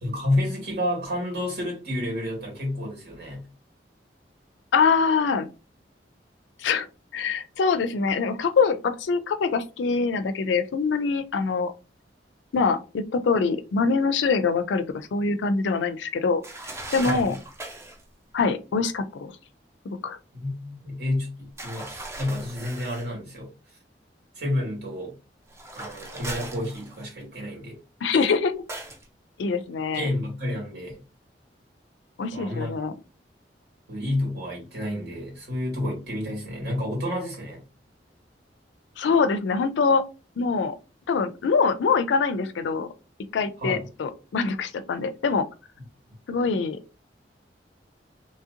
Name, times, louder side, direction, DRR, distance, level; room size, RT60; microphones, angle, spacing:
voice 1, 0.0-3.4 17.0-17.3 20.3-23.5 24.3-25.1 25.7-27.8 29.9-31.0 32.3-32.8 33.9-37.6 43.6-43.8 46.1-46.2, left 1 dB, 65° right, 1.8 m, -30 dB
voice 2, 4.7-5.5 6.6-6.9 7.1-11.7 12.5-16.4 16.9-17.4 18.3-19.3 19.9-20.2 28.0-28.5 29.4-30.1 32.2-32.9 39.0-40.0 40.4-40.8 41.1-42.9 43.3-45.5 46.3-46.8, left 5 dB, 80° left, 0.4 m, -24 dB
sound 1, 16.4-18.0 21.6-23.1 25.5-27.2 28.7-29.1, right 2 dB, 15° right, 0.4 m, -38 dB
2.9 x 2.7 x 2.5 m
head